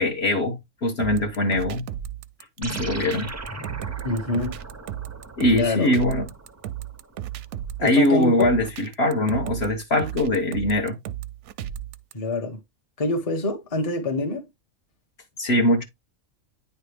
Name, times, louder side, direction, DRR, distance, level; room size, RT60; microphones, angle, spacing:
voice 1, 0.0-1.9 2.6-3.3 5.4-6.3 7.8-11.0 15.4-15.8, left 1 dB, 50° left, 1.3 m, -22 dB
sound 1, 1.0-12.1, right 11 dB, 65° right, 0.8 m, -35 dB
sound 2, 2.6-7.3, right 2 dB, 25° right, 0.3 m, -38 dB
voice 2, 4.0-4.6 5.5-5.9 7.8-8.6 12.1-12.6 13.0-14.5, left 2 dB, 30° left, 1.0 m, -25 dB
9.6 x 3.3 x 3.3 m
omnidirectional pair, 1.5 m